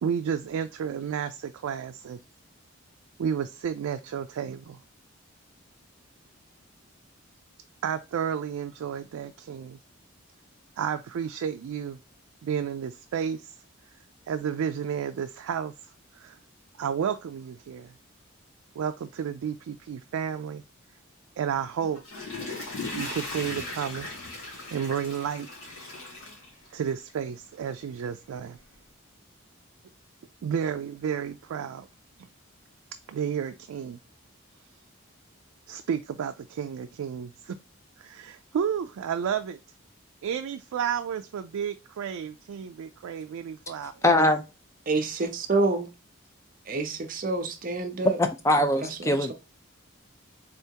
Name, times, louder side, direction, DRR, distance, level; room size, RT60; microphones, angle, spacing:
voice 1, 0.0-2.2 3.2-4.8 7.8-9.8 10.8-12.0 12.4-13.5 14.3-15.7 16.1-16.4 16.8-17.9 18.8-20.6 21.4-22.0 22.9-24.1 24.7-25.5 26.7-28.6 30.4-31.9 33.1-34.0 35.7-37.6 38.0-39.6 40.2-44.0, right 8 dB, 85° right, 0.3 m, -31 dB
Water / Toilet flush, 21.8-27.1 27.6-27.7, left 2 dB, 80° left, 1.9 m, -38 dB
voice 2, 44.0-44.4 48.2-49.3, left 1 dB, 15° left, 0.4 m, -22 dB
voice 3, 44.9-45.9 46.7-48.2 48.8-49.3, right 3 dB, 40° right, 0.6 m, -28 dB
3.7 x 3.4 x 2.8 m
head